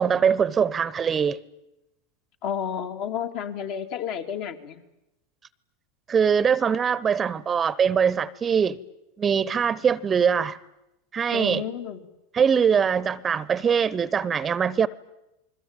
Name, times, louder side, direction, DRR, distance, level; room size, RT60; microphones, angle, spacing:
voice 1, 0.0-1.4 6.1-8.8 9.2-10.6 11.1-11.6 12.3-14.9, right 7 dB, 25° right, 0.9 m, -22 dB
voice 2, 2.4-4.8 11.3-12.1, left 8 dB, 60° left, 2.7 m, -31 dB
28.5 x 21.0 x 9.0 m
hypercardioid pair, 110°, 0 cm